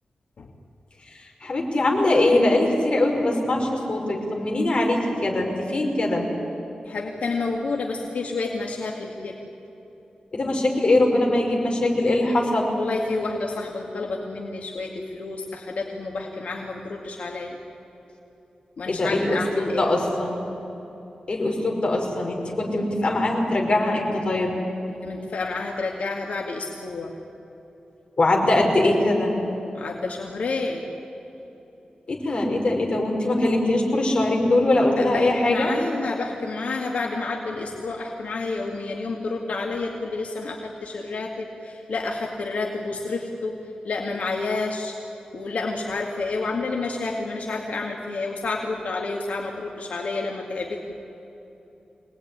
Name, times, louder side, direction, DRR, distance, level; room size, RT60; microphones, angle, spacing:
voice 1, 1.1-6.3 10.3-12.8 18.9-20.4 21.3-24.5 28.2-29.3 32.1-35.8, left 2 dB, 45° left, 0 dB, 5.2 m, -22 dB
voice 2, 6.9-9.4 12.8-17.6 18.8-19.9 25.0-27.2 29.7-30.8 35.0-44.9 45.3-50.9, left 3 dB, 80° left, 0 dB, 2.2 m, -29 dB
25.0 x 19.5 x 9.9 m, 3.0 s
wide cardioid pair, 125°, 2 cm